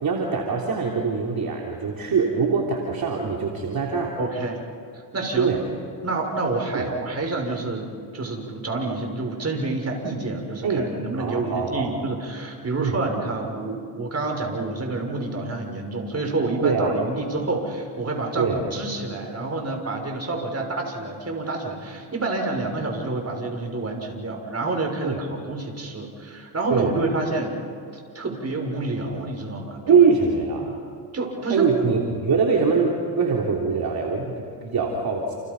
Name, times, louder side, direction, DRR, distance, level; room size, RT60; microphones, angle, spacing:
voice 1, 0.0-4.1 5.4-5.6 6.7-6.9 10.6-11.9 12.8-13.0 16.6-16.9 18.4-18.6 25.0-25.2 26.7-26.9 29.9-30.8 31.5-35.3, right 5 dB, 50° right, -1 dB, 3.5 m, -23 dB
voice 2, 4.2-4.6 4.9-5.5 6.0-27.6 28.1-30.0 31.1-31.6, right 2 dB, 35° right, 2 dB, 6.4 m, -28 dB
29.5 x 29.5 x 5.6 m, 2.4 s
supercardioid pair, 65°, 45 cm